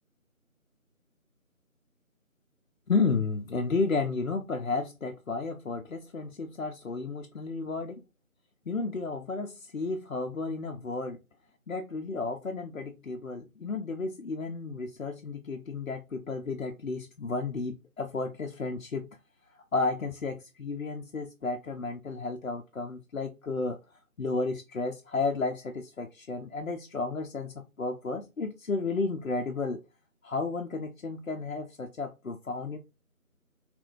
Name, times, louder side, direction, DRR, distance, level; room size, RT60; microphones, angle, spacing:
voice 1, 2.9-8.0 8.7-11.2 11.7-19.1 19.7-23.8 24.2-29.8 30.2-32.8, left 3 dB, 65° left, 0.6 m, -32 dB
3.4 x 2.5 x 3.0 m
figure-of-eight pair, 165°, 43 cm